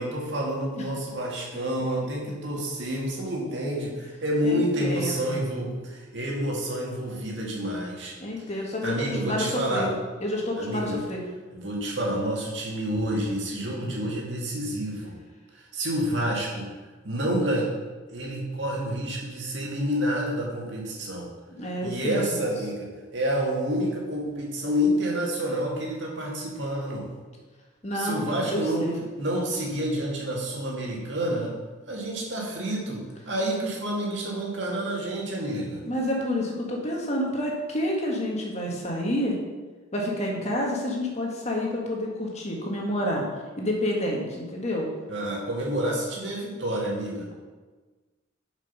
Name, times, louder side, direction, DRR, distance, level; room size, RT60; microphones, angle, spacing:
voice 1, 0.0-8.1 8.8-9.9 10.6-11.0 11.6-15.1 15.5-16.7 17.0-17.7 18.1-21.3 21.8-27.1 27.9-28.9 29.2-31.5 31.9-35.8 45.1-47.3, equal, 70° right, -2 dB, 2.1 m, -29 dB
voice 2, 4.4-5.4 8.2-9.9 10.2-11.2 13.6-14.0 21.5-22.4 27.8-29.0 35.9-39.4 39.9-43.2 43.6-44.9, left 1 dB, 35° left, -1 dB, 1.6 m, -29 dB
7.4 x 5.3 x 5.4 m, 1.3 s
head